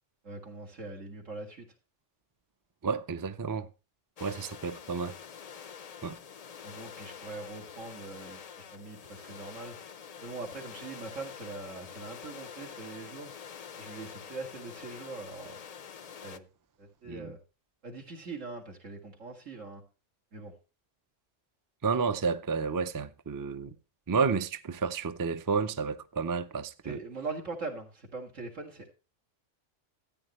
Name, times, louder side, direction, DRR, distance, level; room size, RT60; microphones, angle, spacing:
voice 1, 0.2-1.7 6.6-9.8 10.2-13.3 13.8-15.6 16.2-16.5 16.8-17.4 17.8-19.8 20.3-20.5 26.8-28.9, right 3 dB, 85° right, 2.5 m, -42 dB
voice 2, 2.8-3.7 4.2-5.2 6.0-6.2 17.1-17.3 21.8-23.7 24.1-27.0, right 5 dB, 35° right, 0.3 m, -31 dB
sound 1, 4.2-16.4, left 7 dB, 50° left, 0.4 m, -46 dB
13.5 x 9.1 x 3.1 m
omnidirectional pair, 1.3 m